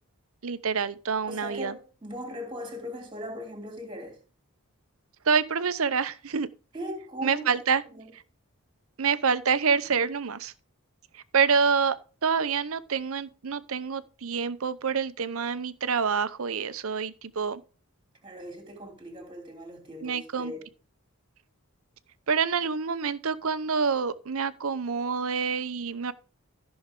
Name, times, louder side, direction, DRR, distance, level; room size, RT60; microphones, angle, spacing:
voice 1, 0.4-1.7 5.2-6.5 7.2-7.8 9.0-10.5 11.1-12.0 12.2-17.6 20.0-20.5 22.3-26.1, right 6 dB, 70° right, 0.7 m, -27 dB
voice 2, 1.3-4.2 6.7-7.5 7.9-8.1 18.2-20.7, equal, 20° right, 3.1 m, -39 dB
14.0 x 6.3 x 3.7 m
head